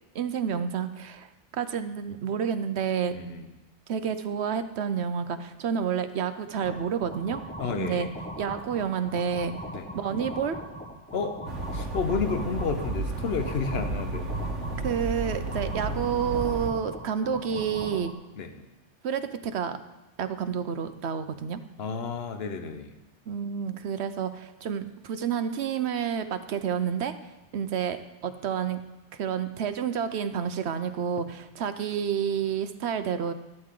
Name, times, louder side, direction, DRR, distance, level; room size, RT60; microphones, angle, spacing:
voice 1, 0.1-3.2 3.9-7.4 7.7-8.1 8.4-9.5 9.9-10.6 14.8-18.1 19.0-19.8 20.2-21.6 23.3-27.2 27.5-28.8 29.1-33.3, right 7 dB, 65° right, 10 dB, 1.0 m, -29 dB
voice 2, 3.1-3.4 7.6-8.1 9.7-9.8 11.1-11.4 11.7-14.2 14.8-14.9 18.4-18.5 21.8-22.9, left 5 dB, 60° left, 7 dB, 1.2 m, -31 dB
sound 1, 6.6-18.1, equal, 10° left, 1.1 m, -40 dB
sound 2, 11.5-16.7, right 2 dB, 85° right, 1.4 m, -32 dB
14.0 x 12.0 x 3.8 m, 1.1 s
omnidirectional pair, 1.2 m